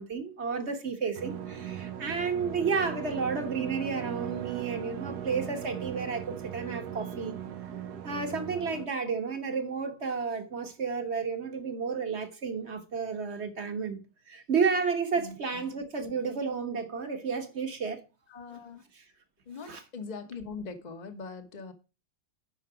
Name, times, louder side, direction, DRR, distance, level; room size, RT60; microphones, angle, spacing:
voice 1, 0.0-7.3 8.0-14.0 14.3-18.0 18.9-19.0 19.6-19.8, right 5 dB, 40° right, 1.4 m, -32 dB
sound 1, 1.1-8.9, right 9 dB, 65° right, 1.2 m, -38 dB
voice 2, 15.2-15.6 18.3-18.8 19.5-21.7, left 4 dB, 25° left, 1.0 m, -41 dB
9.6 x 5.8 x 4.9 m
omnidirectional pair, 2.1 m